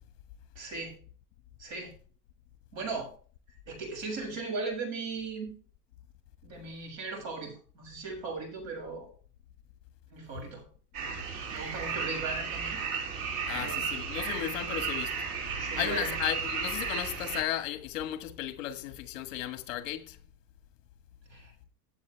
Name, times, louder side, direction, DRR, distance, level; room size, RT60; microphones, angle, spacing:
voice 1, 0.6-1.0 1.6-1.9 2.7-3.1 3.7-5.6 6.4-9.1 10.1-10.6 11.5-12.8 13.5-13.8 15.6-16.2 21.3-21.5, right 3 dB, 60° right, 7.1 m, -37 dB
sound 1, 10.9-17.4, right 6 dB, 85° right, 5.0 m, -34 dB
voice 2, 13.5-15.1 15.8-20.1, left 12 dB, 55° left, 1.4 m, -34 dB
16.0 x 8.0 x 3.4 m
supercardioid pair, 170°, 46 cm